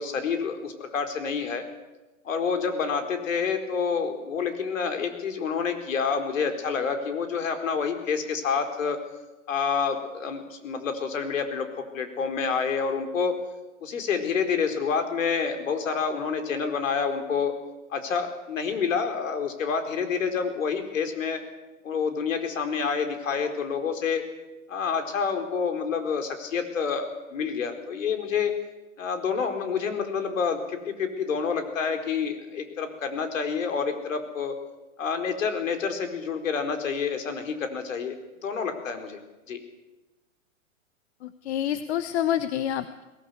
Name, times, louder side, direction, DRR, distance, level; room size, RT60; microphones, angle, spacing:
voice 1, 0.0-1.6 2.2-9.0 9.5-11.7 11.9-13.3 13.8-17.5 17.9-21.4 21.8-24.2 24.7-28.5 29.0-34.6 35.0-38.2 38.4-39.2 39.5-39.6, left 6 dB, 70° left, 6 dB, 4.5 m, -28 dB
voice 2, 41.2-43.0, left 10 dB, 55° left, 12 dB, 1.2 m, -28 dB
22.5 x 18.0 x 8.1 m, 1.1 s
hypercardioid pair, 130°, 41 cm